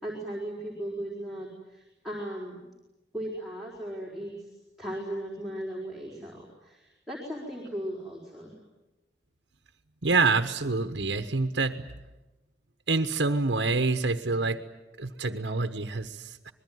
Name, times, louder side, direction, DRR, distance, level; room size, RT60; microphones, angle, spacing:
voice 1, 0.0-2.7 3.1-8.5, right 1 dB, ahead, -4 dB, 4.2 m, -37 dB
voice 2, 10.0-11.9 12.9-14.6 15.0-16.5, right 3 dB, 85° right, 7 dB, 1.2 m, -27 dB
25.5 x 21.5 x 9.4 m, 1.1 s
head